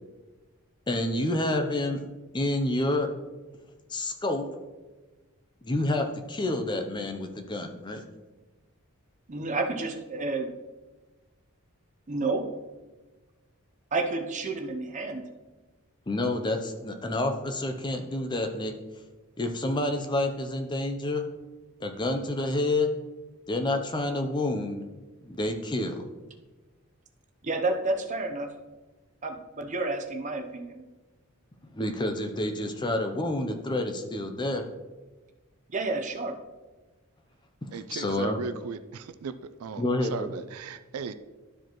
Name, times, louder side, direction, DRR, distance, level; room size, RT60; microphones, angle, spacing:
voice 1, 0.9-2.0 2.3-3.1 3.9-4.5 5.6-8.0 16.1-18.7 19.4-21.3 21.8-22.9 23.5-24.8 25.2-26.0 31.7-34.7 37.9-38.4 39.8-40.3, left 2 dB, 20° left, 0.6 m, -28 dB
voice 2, 9.3-10.5 12.1-12.5 13.9-15.2 27.4-28.5 29.2-30.8 35.7-36.3, right 3 dB, 35° right, 0.7 m, -30 dB
voice 3, 37.7-39.8 40.1-41.1, right 5 dB, 80° right, 0.4 m, -36 dB
12.0 x 4.9 x 3.0 m
head